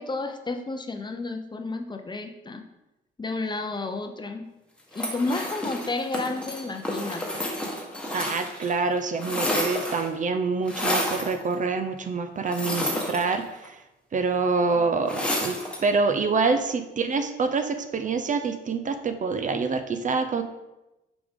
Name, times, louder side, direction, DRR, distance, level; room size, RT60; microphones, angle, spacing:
voice 1, 0.0-2.6 3.2-4.5 4.9-7.4 15.0-15.3, left 3 dB, 20° left, 5 dB, 0.6 m, -31 dB
sound 1, 4.9-8.7 9.0-10.2 10.7-11.3 12.5-13.7 15.1-15.9, left 1 dB, 5° left, 1.4 m, -30 dB
voice 2, 8.1-13.8 14.1-20.4, right 4 dB, 40° right, 8 dB, 0.6 m, -26 dB
6.7 x 5.1 x 3.6 m, 0.98 s
cardioid pair, 90°, 20 cm